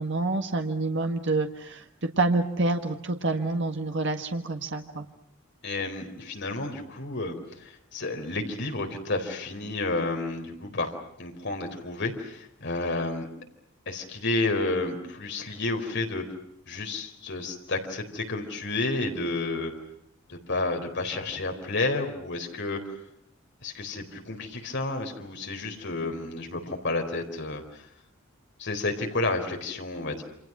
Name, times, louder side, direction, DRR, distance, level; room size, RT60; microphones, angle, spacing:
voice 1, 0.0-1.8 2.2-5.1, right 3 dB, 60° right, 5 dB, 1.7 m, -27 dB
voice 2, 5.6-10.9 11.2-13.3 13.9-16.2 16.7-19.7 20.3-22.8 23.6-27.8 28.6-30.2, left 2 dB, 60° left, 4 dB, 4.1 m, -31 dB
28.5 x 26.5 x 6.1 m, 0.76 s
head